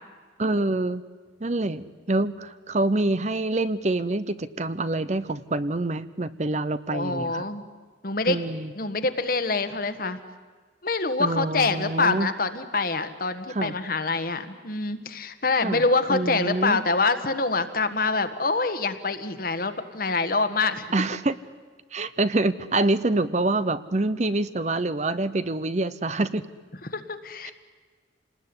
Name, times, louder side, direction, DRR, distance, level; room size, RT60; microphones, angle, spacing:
voice 1, 0.4-1.0 1.4-7.5 8.3-8.7 11.2-12.3 13.5-13.7 15.6-15.8 16.1-16.8 20.9-21.4 21.9-26.4 27.4-27.5, right 2 dB, 40° right, 14 dB, 0.8 m, -26 dB
voice 2, 6.9-7.6 8.0-8.4 8.7-10.2 10.8-20.9 26.9-27.5, left 3 dB, 50° left, 9 dB, 1.6 m, -25 dB
28.0 x 19.5 x 9.8 m, 1.5 s
head